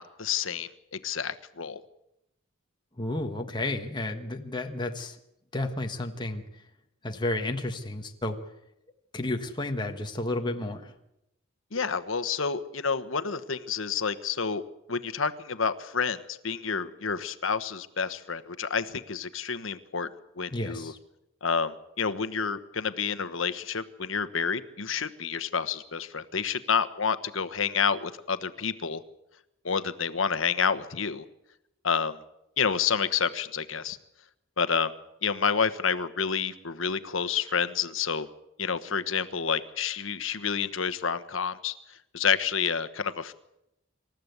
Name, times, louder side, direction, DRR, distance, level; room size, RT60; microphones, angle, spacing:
voice 1, 0.0-1.8 11.7-14.6 14.9-20.1 20.4-20.9 21.4-29.0 29.6-31.2 31.8-32.2 32.6-34.0 34.6-34.9 35.2-38.3 38.6-43.3, left 6 dB, 75° left, 12 dB, 1.2 m, -29 dB
voice 2, 3.0-5.2 5.5-6.4 7.0-8.4 9.1-10.9 20.5-21.0, left 2 dB, 25° left, 4 dB, 1.5 m, -31 dB
26.5 x 14.0 x 8.2 m, 0.87 s
head